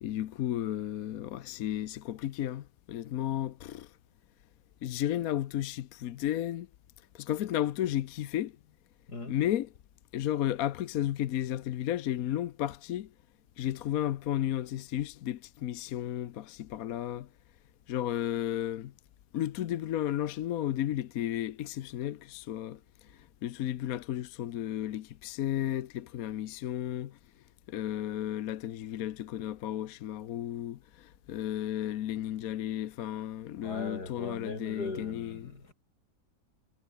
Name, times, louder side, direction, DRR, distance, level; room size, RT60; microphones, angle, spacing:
voice 1, 0.0-3.9 4.8-6.7 7.1-8.5 9.3-9.7 10.1-13.1 13.6-17.3 17.9-18.9 19.3-27.2 27.7-35.5, left 12 dB, 70° left, 1.1 m, -33 dB
voice 2, 33.6-35.7, left 3 dB, 85° left, 5.2 m, -39 dB
omnidirectional pair, 1.7 m